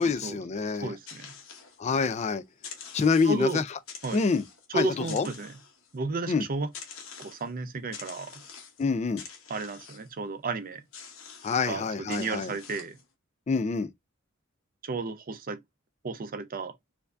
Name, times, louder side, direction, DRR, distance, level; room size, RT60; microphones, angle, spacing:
voice 1, 0.0-0.9 1.8-2.4 2.9-3.6 4.1-4.4 4.7-5.3 6.3-6.4 8.8-9.2 11.4-12.5 13.5-13.9, left 4 dB, 35° left, 0.4 m, -26 dB
voice 2, 0.8-1.4 3.2-3.6 4.0-4.2 4.7-5.6 5.9-6.7 7.2-8.4 9.5-10.8 11.7-13.0 14.8-15.6 16.0-16.7, right 3 dB, 45° right, 0.5 m, -33 dB
sound 1, 0.9-2.2 2.5-3.5 3.9-4.7 5.0-6.0 6.7-7.5 7.9-8.9 9.2-10.1 10.9-11.7 12.1-13.0, left 6 dB, 70° left, 1.0 m, -46 dB
4.4 x 2.6 x 2.3 m
head